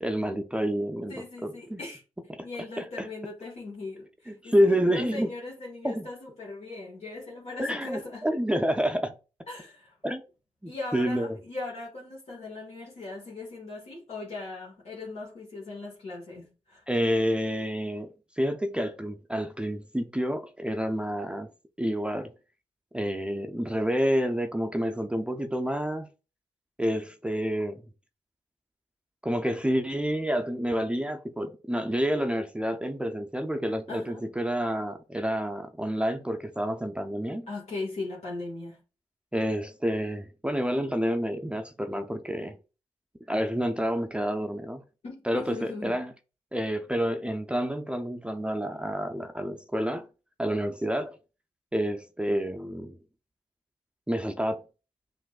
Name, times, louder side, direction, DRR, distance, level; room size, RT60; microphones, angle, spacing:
voice 1, 0.0-1.2 1.4-1.8 2.3-2.5 2.8-3.1 4.3-5.3 5.8-6.1 7.6-9.1 10.0-10.2 10.6-11.3 16.9-18.1 18.4-21.5 21.8-22.3 22.9-26.1 26.8-27.8 29.2-37.5 39.3-42.6 43.3-44.8 45.2-46.1 46.5-50.1 50.4-51.2 51.7-53.0 54.1-54.6, equal, 10° right, 0.5 m, -28 dB
voice 2, 1.1-2.0 2.4-8.3 9.5-9.9 10.6-16.8 33.9-34.2 37.5-38.8 45.0-46.0, left 3 dB, 65° left, 1.3 m, -39 dB
5.8 x 2.6 x 2.4 m
supercardioid pair, 40°, 12 cm